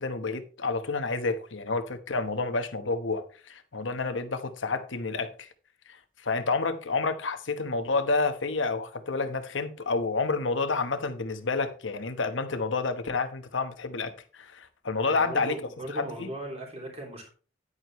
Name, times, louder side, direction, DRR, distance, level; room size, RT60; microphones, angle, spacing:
voice 1, 0.0-5.5 5.9-15.6 15.9-16.3, left 3 dB, 85° left, 1.1 m, -29 dB
voice 2, 14.9-17.3, right 1 dB, 35° right, 3.4 m, -38 dB
10.0 x 9.2 x 3.1 m
head